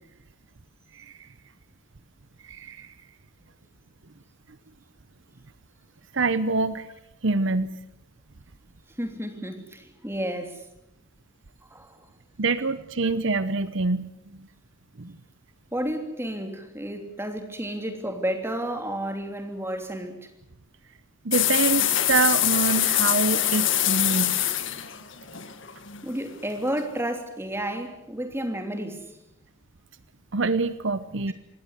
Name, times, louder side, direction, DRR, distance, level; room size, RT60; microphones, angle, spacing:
voice 1, 0.9-1.3 2.4-2.9 6.1-6.9 7.2-7.7 12.4-14.5 15.0-15.2 21.2-24.5 30.3-31.3, right 3 dB, 60° right, 0.9 m, -26 dB
voice 2, 9.0-10.6 11.7-11.9 15.7-20.2 26.0-29.0, right 1 dB, 10° right, 3.1 m, -31 dB
sound 1, 21.3-26.2, left 12 dB, 60° left, 1.9 m, -24 dB
26.0 x 19.5 x 8.2 m
head